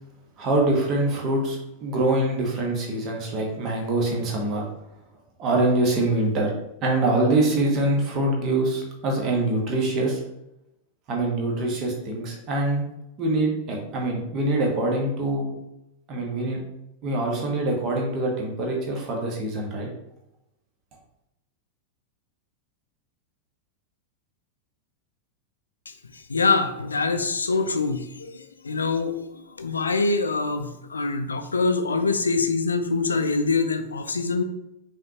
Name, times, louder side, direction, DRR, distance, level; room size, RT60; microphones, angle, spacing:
voice 1, 0.4-4.6 5.4-6.5 6.8-10.2 11.1-12.8 13.2-15.5 16.1-16.6 17.0-19.9, right 2 dB, 35° right, 0 dB, 1.3 m, -24 dB
voice 2, 25.9-34.4, left 4 dB, 75° left, 8 dB, 0.4 m, -25 dB
5.5 x 3.2 x 2.9 m, 0.88 s
figure-of-eight pair, 90°, 0 cm